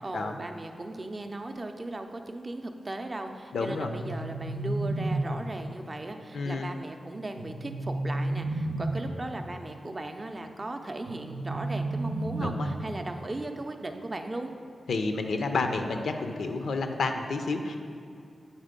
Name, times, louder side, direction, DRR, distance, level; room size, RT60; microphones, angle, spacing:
voice 1, 0.0-14.5, right 2 dB, 25° right, 5 dB, 0.4 m, -37 dB
voice 2, 3.5-3.9 6.3-6.7 12.4-12.7 14.9-17.8, left 3 dB, 80° left, 5 dB, 0.5 m, -30 dB
sound 1, 3.7-5.7 7.4-9.3 11.1-13.0, right 2 dB, 85° right, 0.6 m, -32 dB
8.7 x 4.0 x 5.2 m, 2.5 s
wide cardioid pair, 140°, 0 cm